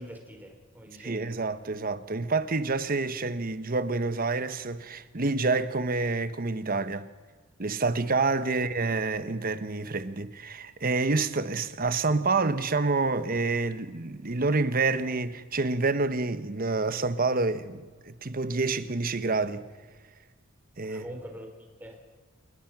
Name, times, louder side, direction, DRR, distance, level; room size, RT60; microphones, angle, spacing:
voice 1, 0.0-1.3 8.4-8.5 20.8-22.0, equal, 10° right, 4.2 m, -44 dB
voice 2, 1.0-7.1 7.6-19.6 20.8-21.1, right 3 dB, 45° right, 1.1 m, -28 dB
28.5 x 19.5 x 6.1 m
head